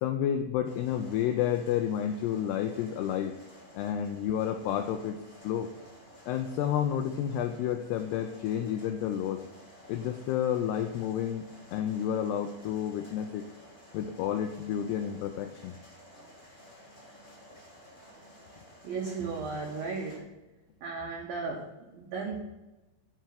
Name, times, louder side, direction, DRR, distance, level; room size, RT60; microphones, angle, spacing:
voice 1, 0.0-3.3 3.7-5.2 5.4-5.7 6.3-9.4 9.9-11.4 11.7-13.5 13.9-15.7, left 9 dB, 90° left, 7 dB, 2.3 m, -30 dB
sound 1, 0.6-20.2, equal, 30° left, 0.8 m, -53 dB
voice 2, 18.8-20.3 20.8-22.4, right 4 dB, 75° right, 0 dB, 2.2 m, -35 dB
12.0 x 4.7 x 5.8 m, 1.0 s
omnidirectional pair, 5.3 m